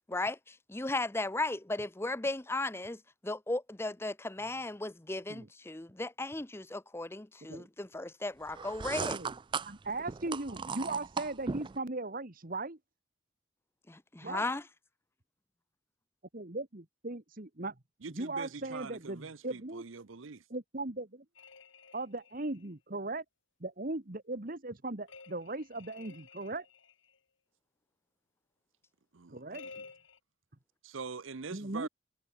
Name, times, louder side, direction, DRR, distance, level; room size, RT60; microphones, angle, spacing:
voice 1, 0.1-9.2 13.9-14.6, left 2 dB, 10° left, 0.6 m, -36 dB
sound 1, 8.5-11.8, right 5 dB, 25° right, 0.3 m, -38 dB
voice 2, 9.6-12.8 14.2-14.4 16.3-17.8 18.1-19.8 20.5-21.2 21.9-23.2 23.6-26.6 29.3-29.7 31.5-31.9, right 2 dB, 45° right, 1.6 m, -38 dB
voice 3, 18.0-20.4 29.1-29.8 30.8-31.9, right 4 dB, 80° right, 0.8 m, -44 dB
sound 2, 21.4-22.7 25.1-27.2 29.5-30.2, left 4 dB, 75° left, 3.3 m, -53 dB
head